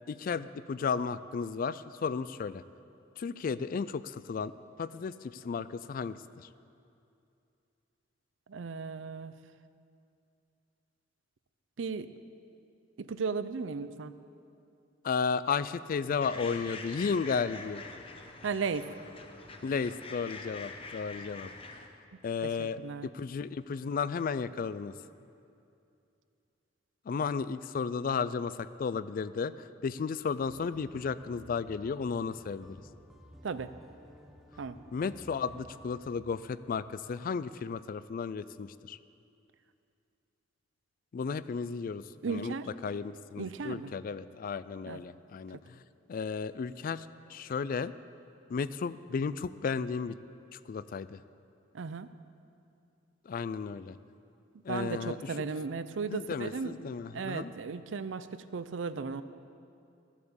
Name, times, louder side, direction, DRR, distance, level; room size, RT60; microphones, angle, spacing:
voice 1, 0.1-2.6 3.2-4.5 4.8-6.5 15.0-17.8 19.6-21.8 22.2-24.9 27.1-29.5 29.8-32.8 34.9-39.0 41.1-42.5 42.8-45.8 46.1-47.9 48.5-50.2 50.5-51.2 53.3-54.0 54.6-55.3 56.1-57.5, left 5 dB, 50° left, 16 dB, 0.3 m, -34 dB
voice 2, 8.5-9.3 11.8-12.1 13.0-14.1 18.4-18.9 22.4-23.1 33.4-33.7 34.6-34.8 42.2-42.7 43.4-43.9 44.9-45.0 51.7-52.1 54.7-56.7 57.1-59.2, right 5 dB, 85° right, 13 dB, 0.5 m, -35 dB
sound 1, 16.2-21.9, left 3 dB, 30° left, 0.8 m, -45 dB
sound 2, 30.4-36.2, equal, ahead, 0.8 m, -54 dB
14.0 x 8.2 x 7.1 m, 2.6 s
head